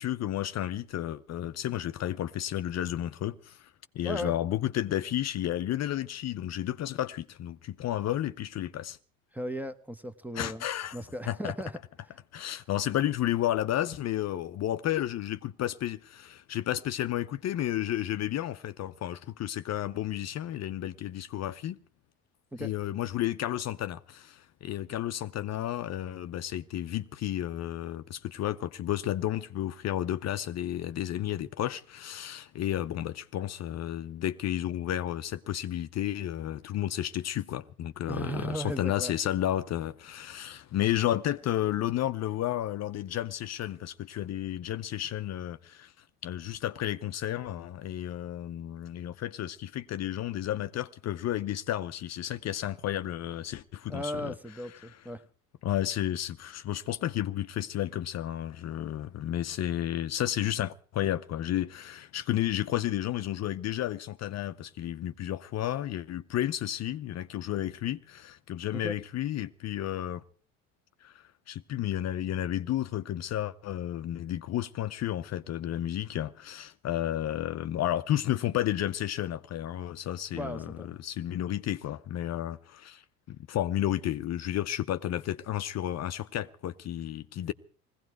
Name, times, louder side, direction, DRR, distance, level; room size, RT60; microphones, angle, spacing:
voice 1, 0.0-9.0 10.3-11.0 11.3-11.5 12.3-21.8 22.6-45.9 46.2-54.3 54.7-55.1 55.6-70.2 71.0-83.0 83.3-87.5, left 12 dB, 45° left, 0.7 m, -32 dB
voice 2, 9.3-10.6 10.9-11.7 22.5-22.7 38.1-39.1 53.9-55.2 68.7-69.0 80.3-80.9, equal, 5° right, 1.0 m, -36 dB
18.5 x 16.5 x 4.7 m
supercardioid pair, 85°, 36 cm